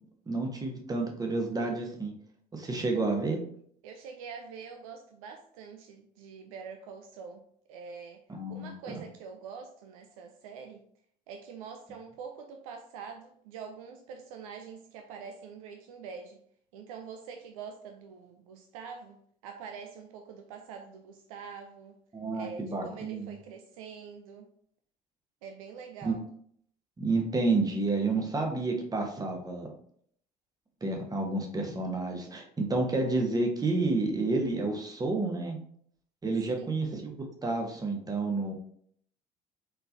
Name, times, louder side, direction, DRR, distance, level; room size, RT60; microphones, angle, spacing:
voice 1, 0.3-2.1 2.5-3.4 8.3-8.7 22.1-23.3 26.0-26.2 27.0-29.7 30.8-35.6 36.2-38.5, right 3 dB, 20° right, 3 dB, 1.1 m, -30 dB
voice 2, 3.8-7.4 7.7-8.2 8.5-10.8 11.3-16.4 16.7-22.0 22.3-24.5 25.4-26.2 36.6-36.7, right 6 dB, 65° right, 5 dB, 0.5 m, -45 dB
4.5 x 3.9 x 2.6 m, 0.63 s
figure-of-eight pair, 55°, 19 cm